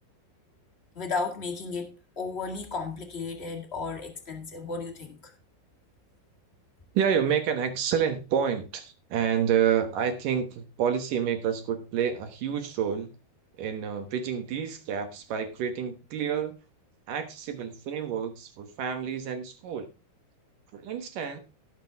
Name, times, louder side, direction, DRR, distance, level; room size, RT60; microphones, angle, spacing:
voice 1, 0.9-5.2, left 4 dB, 65° left, 2 dB, 0.6 m, -34 dB
voice 2, 6.9-13.1 13.6-16.5 17.1-19.9 20.7-21.4, right 8 dB, 65° right, 7 dB, 2.6 m, -28 dB
18.0 x 6.4 x 3.5 m, 0.30 s
omnidirectional pair, 4.5 m